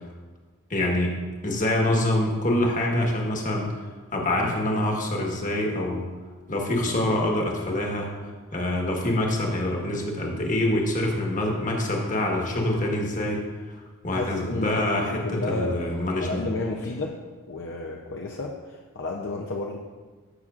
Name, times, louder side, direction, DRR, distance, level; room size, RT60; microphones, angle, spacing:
voice 1, 0.7-1.1 1.4-3.7 4.1-6.0 6.5-8.1 8.5-13.7 14.0-16.5, left 1 dB, 35° left, 0 dB, 1.3 m, -25 dB
voice 2, 14.1-15.8 16.2-17.2 17.5-19.8, left 2 dB, 55° left, 0 dB, 0.6 m, -32 dB
14.5 x 5.9 x 2.5 m, 1.4 s
head